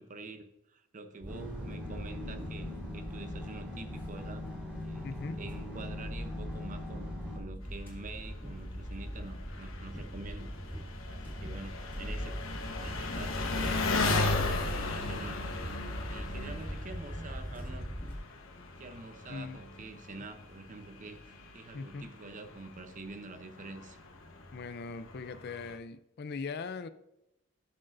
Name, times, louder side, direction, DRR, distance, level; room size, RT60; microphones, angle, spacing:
voice 1, 0.0-4.5 4.8-10.5 11.0-13.8 14.2-15.4 16.1-18.0 18.8-24.0, right 3 dB, 40° right, 8 dB, 0.7 m, -47 dB
sound 1, 1.2-18.2, equal, 10° left, 2.3 m, -41 dB
sound 2, 1.3-7.4, left 1 dB, 5° right, 3.0 m, -41 dB
voice 2, 5.0-5.4 19.3-19.6 21.7-22.1 24.5-26.9, left 4 dB, 55° left, 12 dB, 0.5 m, -40 dB
Engine, 7.6-25.8, left 3 dB, 75° left, 1.1 m, -37 dB
11.5 x 6.3 x 2.6 m, 0.85 s
head